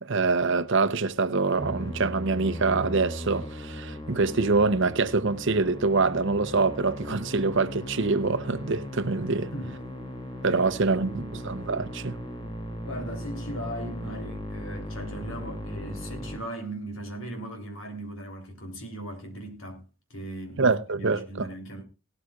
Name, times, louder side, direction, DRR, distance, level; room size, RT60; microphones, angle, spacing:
voice 1, 0.0-9.5 10.4-12.2 20.6-21.5, right 4 dB, 60° right, 0.9 m, -25 dB
Musical instrument, 1.6-16.4, equal, 25° left, 2.8 m, -37 dB
voice 2, 9.5-9.8 10.4-11.4 12.8-19.8 20.1-21.8, right 1 dB, 70° left, 3.5 m, -38 dB
18.5 x 12.5 x 2.4 m
head